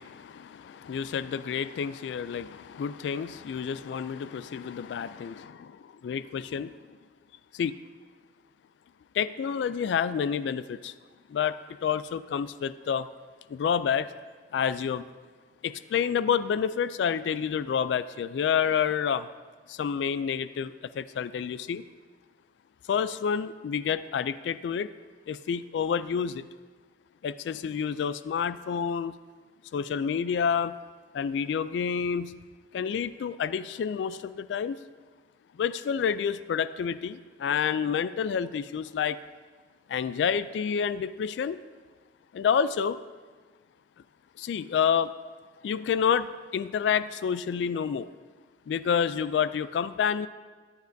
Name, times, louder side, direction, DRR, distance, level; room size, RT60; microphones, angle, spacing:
voice 1, 0.0-6.7 7.5-7.8 9.1-10.9 11.3-11.6 11.8-13.1 13.5-14.1 14.5-15.0 15.6-19.3 19.7-21.8 22.9-24.9 25.3-26.5 27.2-29.1 29.7-30.8 31.1-32.3 32.7-34.8 35.6-39.2 39.9-41.6 42.3-43.0 44.4-45.1 45.6-48.1 48.7-50.3, left 7 dB, 75° left, 15 dB, 0.3 m, -29 dB
14.0 x 10.5 x 2.6 m, 1.4 s
head